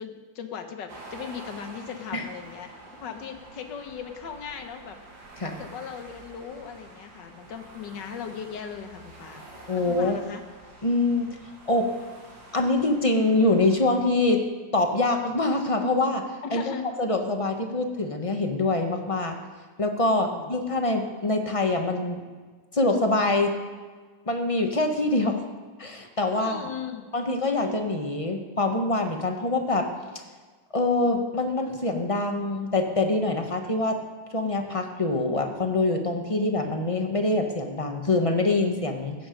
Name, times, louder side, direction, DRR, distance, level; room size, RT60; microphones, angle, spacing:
voice 1, 0.0-5.0 5.4-9.5 9.8-10.4 16.4-16.9 20.3-20.5 26.4-27.1, left 7 dB, 70° left, 6 dB, 1.7 m, -38 dB
sound 1, 0.9-14.0, right 2 dB, 80° right, 2.9 m, -48 dB
voice 2, 9.7-10.2 10.8-11.3 11.7-11.9 12.5-14.4 14.7-16.2 16.5-16.6 17.0-19.4 19.8-22.2 22.7-23.5 24.3-25.5 25.8-26.7 27.1-29.9 30.7-34.0 34.3-39.1, left 2 dB, 25° left, 4 dB, 0.8 m, -24 dB
15.0 x 9.4 x 5.2 m, 1.4 s
omnidirectional pair, 2.0 m